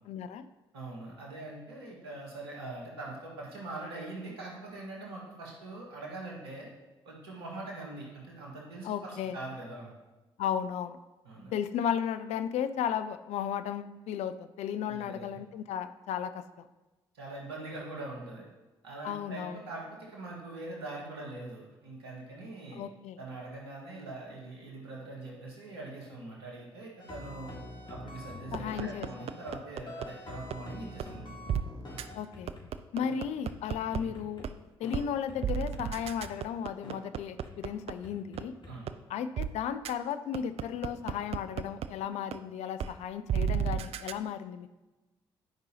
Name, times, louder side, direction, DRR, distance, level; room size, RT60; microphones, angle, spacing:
voice 1, 0.1-0.5 8.8-9.4 10.4-11.0 11.5-16.4 19.0-19.6 22.7-23.2 28.5-29.3 32.1-32.5 32.9-34.5 34.8-38.5 39.1-44.7, left 8 dB, 60° left, 11 dB, 0.5 m, -34 dB
voice 2, 0.7-6.7 7.0-9.9 11.2-11.5 14.9-15.4 17.1-18.4 18.8-22.8 23.2-27.6 27.9-31.4 34.0-34.1 38.7-38.9, right 2 dB, 85° right, -2 dB, 1.5 m, -43 dB
sound 1, 27.0-29.6 29.9-32.6 33.0-33.1 33.5-33.6 33.9-34.5 34.8-35.0 35.3-35.4 35.7-36.3 36.8-37.0 37.4-37.5 38.0-38.7, left 2 dB, 35° left, 1.8 m, -46 dB
sound 2, 28.5-30.1 30.5-30.6 31.0-31.1 31.5-31.6 32.0-32.1 32.5-34.0 34.4-34.5 34.9-35.1 35.4-37.9 38.4-38.5 38.9-39.0 39.4-39.5 39.8-39.9 40.3-41.9 42.3-42.4 42.8-42.9 43.3-44.1, right 9 dB, 55° right, 0.4 m, -32 dB
11.0 x 5.3 x 2.8 m, 1.1 s
figure-of-eight pair, 45°, 13 cm